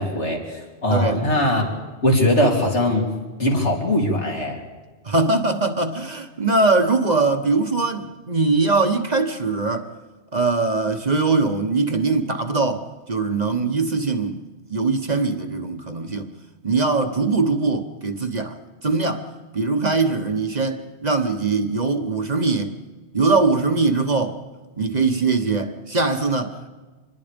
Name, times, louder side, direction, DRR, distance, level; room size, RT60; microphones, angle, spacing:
voice 1, 0.0-1.7 2.0-3.1 3.4-4.6, left 1 dB, 80° left, 4.0 m, -20 dB
voice 2, 0.9-1.2 5.0-9.9 10.3-14.4 14.7-16.3 16.6-18.6 18.8-19.3 19.5-22.7 23.1-24.4 24.8-26.7, right 3 dB, 40° right, 1.2 m, -21 dB
26.0 x 21.0 x 5.2 m
omnidirectional pair, 1.2 m